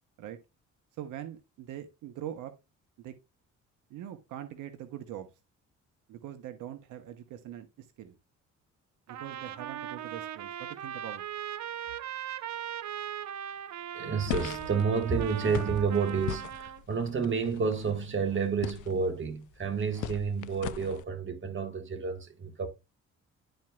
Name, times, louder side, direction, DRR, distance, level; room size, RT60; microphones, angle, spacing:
voice 1, 1.0-2.5 3.0-3.2 3.9-5.3 6.1-8.2 9.1-11.2 11.9-12.0, right 11 dB, 85° right, 1.1 m, -42 dB
Trumpet, 9.1-16.8, right 10 dB, 65° right, 0.8 m, -39 dB
voice 2, 13.9-22.7, right 5 dB, 40° right, 1.7 m, -30 dB
sound 1, 14.3-21.0, left 13 dB, 75° left, 0.5 m, -40 dB
11.5 x 4.4 x 2.4 m
cardioid pair, 90°, 30 cm